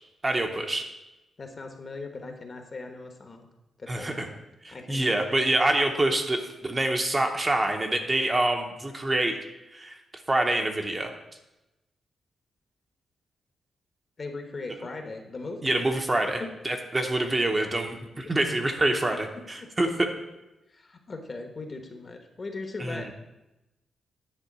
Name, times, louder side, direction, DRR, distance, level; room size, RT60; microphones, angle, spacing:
voice 1, 0.2-0.8 3.9-4.3 4.6-9.4 9.7-11.1 15.6-20.1 22.8-23.1, right 1 dB, 20° right, 3 dB, 0.8 m, -26 dB
voice 2, 1.4-3.5 3.8-4.4 4.7-5.7 14.2-15.7 18.2-18.3 19.6-19.9 20.7-23.1, left 3 dB, 35° left, 4 dB, 1.0 m, -39 dB
9.8 x 3.7 x 6.1 m, 0.97 s
wide cardioid pair, 130°, 0 cm